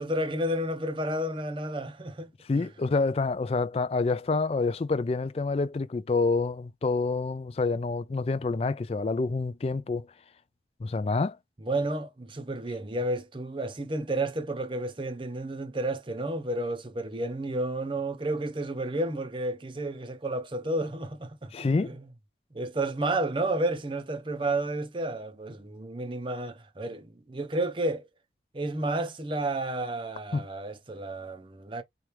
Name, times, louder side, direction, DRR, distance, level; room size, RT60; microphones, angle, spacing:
voice 1, 0.0-2.3 2.6-2.7 11.6-22.1 22.5-28.1 28.5-31.8, right 1 dB, 30° right, 0.6 m, -31 dB
voice 2, 2.5-10.1 10.8-11.4 21.5-21.9 30.3-30.4, left 3 dB, 35° left, 0.3 m, -27 dB
4.4 x 2.4 x 3.2 m
head